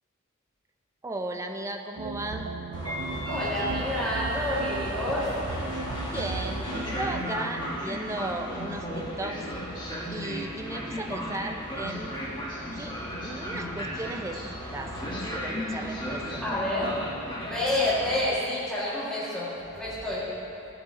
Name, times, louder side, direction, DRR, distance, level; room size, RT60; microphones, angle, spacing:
voice 1, 1.0-2.5 6.1-9.4 9.8-12.2 12.7-12.9 13.2-16.5, right 2 dB, 15° right, 4 dB, 0.4 m, -36 dB
sound 1, 2.0-7.2, right 3 dB, 90° right, 0.5 m, -36 dB
Train, 2.7-18.2, equal, 20° left, 1.4 m, -35 dB
voice 2, 3.3-5.3 16.4-17.0 17.4-20.3, left 1 dB, 5° left, -10 dB, 2.0 m, -29 dB
sound 2, 6.8-12.5, equal, 45° left, 1.9 m, -50 dB
12.5 x 6.2 x 2.8 m, 2.9 s
head